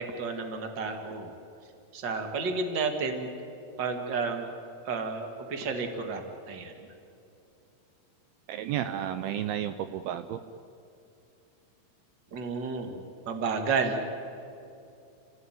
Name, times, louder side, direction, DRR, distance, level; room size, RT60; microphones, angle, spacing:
voice 1, 0.0-1.4 1.9-3.3 3.8-4.5 4.8-6.2 6.5-6.7 12.3-14.1, right 4 dB, 40° right, 5 dB, 1.8 m, -31 dB
voice 2, 8.5-10.4, right 10 dB, 90° right, 10 dB, 2.1 m, -32 dB
30.0 x 16.0 x 9.2 m, 2.7 s
omnidirectional pair, 5.2 m